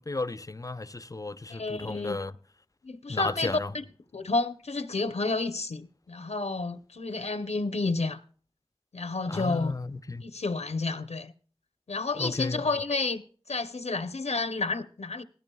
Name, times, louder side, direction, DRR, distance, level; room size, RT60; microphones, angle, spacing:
voice 1, 0.0-2.3 3.1-3.7 9.3-10.2 12.2-12.6, left 3 dB, 30° left, 0.5 m, -33 dB
voice 2, 1.5-2.2 2.8-3.8 4.1-8.2 8.9-9.7 10.2-11.3 11.9-15.2, left 3 dB, 85° left, 0.7 m, -30 dB
17.0 x 14.0 x 2.3 m
wide cardioid pair, 55°, 11 cm